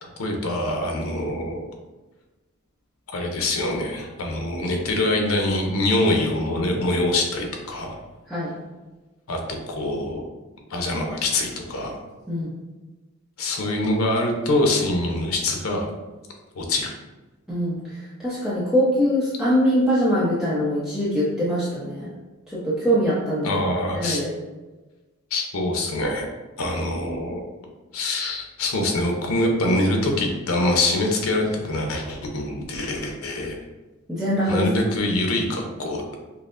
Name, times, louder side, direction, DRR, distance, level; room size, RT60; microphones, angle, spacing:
voice 1, 0.0-1.6 3.1-8.0 9.3-10.2 10.7-12.0 13.4-15.9 16.5-16.9 23.4-24.2 25.3-26.3 26.6-27.4 27.9-33.6 34.5-36.0, left 1 dB, 85° left, 2 dB, 0.7 m, -24 dB
voice 2, 17.5-17.8 18.2-22.1 22.5-23.6 23.9-24.3 34.1-34.7, equal, 5° right, -10 dB, 0.7 m, -22 dB
5.5 x 2.0 x 2.5 m, 1.2 s
head